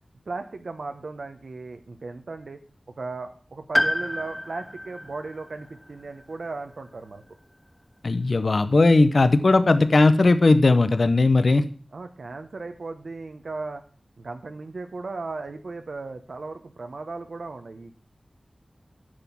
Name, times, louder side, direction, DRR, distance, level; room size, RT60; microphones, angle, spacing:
voice 1, 0.3-2.6 3.0-7.2 11.9-13.8 14.2-18.0, right 3 dB, 80° right, 6 dB, 0.9 m, -36 dB
Piano, 3.7-7.6 7.9-8.0 9.1-9.2, equal, 5° left, 0.4 m, -30 dB
voice 2, 8.0-11.7, left 3 dB, 65° left, 12 dB, 0.7 m, -18 dB
9.7 x 6.0 x 7.2 m, 0.41 s
wide cardioid pair, 85°, 0 cm